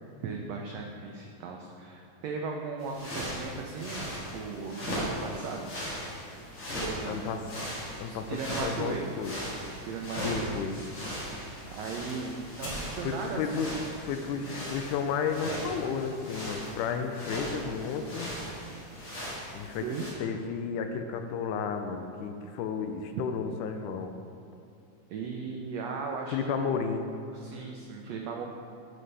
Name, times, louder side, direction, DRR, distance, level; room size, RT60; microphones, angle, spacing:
voice 1, 0.2-5.7 6.8-7.2 8.0-9.1 9.8-10.5 11.7-13.6 14.2-14.6 19.8-20.1 25.1-26.7 27.3-28.5, right 5 dB, 85° right, 1 dB, 1.4 m, -37 dB
sound 1, 2.8-20.1, equal, 45° left, 2.5 m, -38 dB
voice 2, 7.1-7.4 8.0-9.3 10.2-10.7 13.0-13.7 14.0-18.3 19.5-19.9 20.2-24.1 26.3-27.1, left 6 dB, 80° left, 6 dB, 1.9 m, -32 dB
11.0 x 6.6 x 3.3 m, 2.5 s
omnidirectional pair, 3.7 m